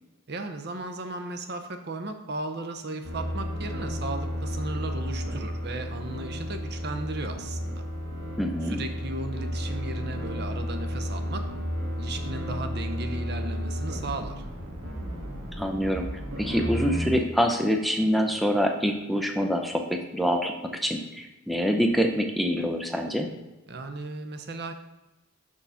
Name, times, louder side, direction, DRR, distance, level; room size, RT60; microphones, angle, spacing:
voice 1, 0.3-7.8 8.6-11.5 12.0-14.4 23.7-24.7, right 2 dB, 50° right, 6 dB, 0.7 m, -36 dB
sound 1, 3.0-17.1, equal, 85° right, 1.5 m, -33 dB
voice 2, 8.4-8.8 15.6-16.1 16.4-20.5 20.8-23.3, equal, ahead, 3 dB, 0.5 m, -25 dB
6.2 x 3.9 x 5.7 m, 1.0 s
head